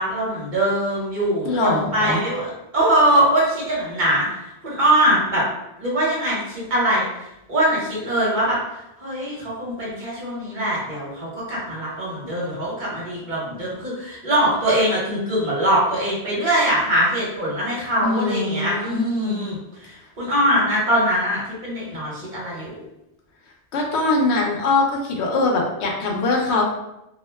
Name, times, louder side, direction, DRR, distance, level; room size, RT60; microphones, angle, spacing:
voice 1, 0.0-4.3 4.6-5.4 5.8-7.1 7.5-8.6 9.0-22.8, right 1 dB, 50° right, -6 dB, 1.0 m, -22 dB
voice 2, 1.4-2.2 18.0-19.4 23.7-26.6, left 3 dB, 80° left, 0 dB, 0.9 m, -22 dB
2.4 x 2.1 x 3.2 m, 0.89 s
omnidirectional pair, 1.1 m